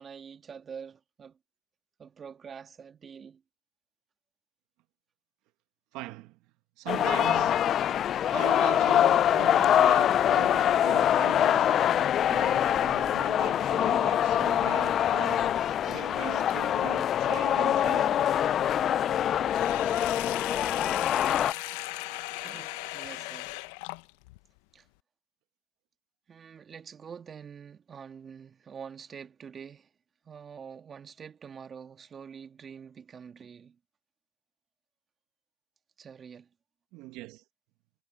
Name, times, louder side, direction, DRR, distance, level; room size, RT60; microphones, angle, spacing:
voice 1, 0.0-1.4 2.0-3.4 22.4-23.6 24.7-24.9 26.3-29.9 30.2-33.8 36.0-36.5, right 7 dB, 40° right, 2.5 m, -46 dB
voice 2, 5.9-6.4 6.8-7.8 8.3-11.8 12.3-15.6 15.9-18.2 36.9-37.4, right 19 dB, 70° right, 1.6 m, -41 dB
sound 1, 6.9-21.5, left 10 dB, 50° left, 0.4 m, -24 dB
Wind instrument woodwind instrument, 18.3-23.1, right 2 dB, 15° right, 6.6 m, -51 dB
Sink (filling or washing), 19.5-24.4, left 22 dB, 80° left, 0.7 m, -38 dB
supercardioid pair, 80°, 0 cm